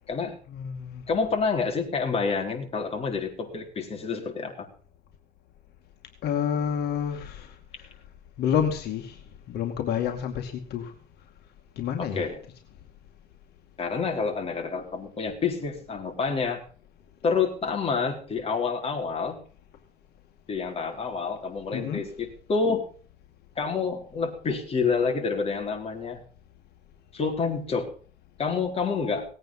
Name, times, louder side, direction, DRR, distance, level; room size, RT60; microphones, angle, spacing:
voice 1, 0.5-1.0 6.2-7.9 8.4-9.2 9.5-10.9 11.8-12.3 21.7-22.0, left 8 dB, 75° left, 3 dB, 2.3 m, -29 dB
voice 2, 1.1-4.7 12.0-12.4 13.8-16.6 17.2-19.4 20.5-22.9 23.6-26.2 27.1-27.9 28.4-29.3, left 5 dB, 35° left, 2 dB, 4.2 m, -28 dB
18.5 x 9.0 x 5.6 m, 0.43 s
cardioid pair, 110°, 17 cm